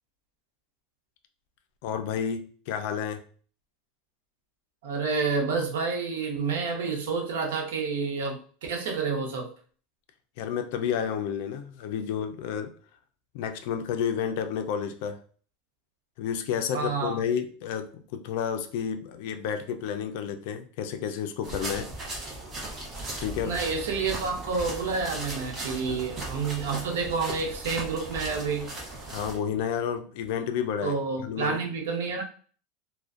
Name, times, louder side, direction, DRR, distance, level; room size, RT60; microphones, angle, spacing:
voice 1, 1.8-3.2 10.4-12.7 13.3-15.2 16.2-21.9 23.2-23.6 25.9-26.1 29.1-31.0 31.2-31.6, left 8 dB, 65° left, 7 dB, 0.4 m, -31 dB
voice 2, 4.8-9.5 16.7-17.2 23.4-28.7 30.8-32.2, right 4 dB, 90° right, 1 dB, 0.7 m, -29 dB
sound 1, 21.4-29.4, right 2 dB, 25° right, 0.8 m, -37 dB
2.4 x 2.1 x 2.4 m, 0.43 s
supercardioid pair, 140°, 0 cm